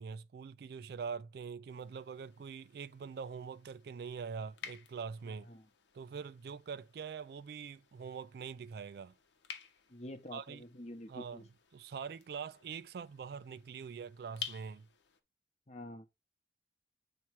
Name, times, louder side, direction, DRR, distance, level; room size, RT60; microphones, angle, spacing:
voice 1, 0.0-5.5 5.9-9.1 10.3-10.7 11.1-11.4 11.7-14.9, right 6 dB, 60° right, 0.3 m, -44 dB
sound 1, 1.7-15.2, left 8 dB, 80° left, 0.8 m, -53 dB
voice 2, 9.9-11.4 15.7-16.1, left 1 dB, 35° left, 0.8 m, -47 dB
8.5 x 3.0 x 4.6 m
head